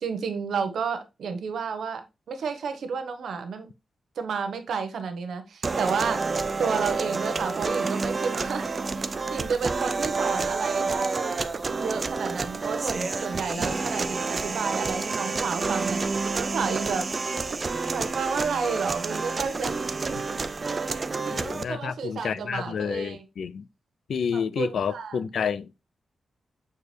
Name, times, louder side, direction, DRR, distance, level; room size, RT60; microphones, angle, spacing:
voice 1, 0.0-3.7 4.2-6.2 6.6-11.4 11.8-17.1 17.9-19.8 20.0-20.4 21.2-23.2 24.3-25.2, right 5 dB, 80° right, 1.0 m, -31 dB
sound 1, 5.6-21.6, right 4 dB, 35° right, 0.4 m, -29 dB
voice 2, 21.3-23.7 24.1-25.7, left 7 dB, 70° left, 0.3 m, -30 dB
6.8 x 4.4 x 3.2 m
wide cardioid pair, 140°, 0 cm